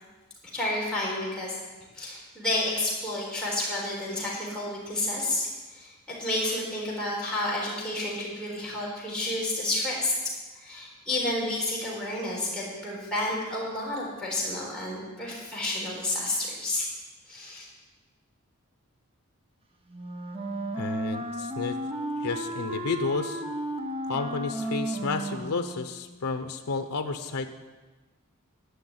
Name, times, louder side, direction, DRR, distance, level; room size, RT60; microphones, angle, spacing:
voice 1, 0.5-1.6 1.9-10.2 10.5-16.9 17.3-17.6, left 1 dB, 5° left, -6 dB, 3.9 m, -30 dB
Wind instrument woodwind instrument, 19.9-26.0, right 1 dB, 25° right, 1.0 m, -33 dB
voice 2, 20.8-21.8 22.2-23.4 24.1-27.5, left 4 dB, 85° left, 7 dB, 0.7 m, -31 dB
11.5 x 6.1 x 9.3 m, 1.3 s
head